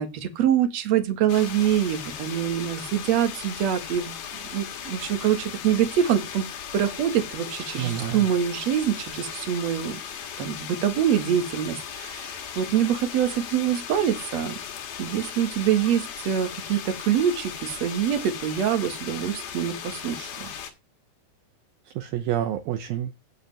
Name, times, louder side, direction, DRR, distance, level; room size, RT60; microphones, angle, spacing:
voice 1, 0.0-4.2 4.5-6.5 6.7-10.0 10.4-14.5 15.0-20.5, right 9 dB, 50° right, 2.4 m, -25 dB
sound 1, 1.3-20.7, left 8 dB, 70° left, 3.7 m, -37 dB
voice 2, 7.8-8.3 22.0-23.1, right 11 dB, 75° right, 2.5 m, -28 dB
17.0 x 7.1 x 3.4 m
omnidirectional pair, 4.7 m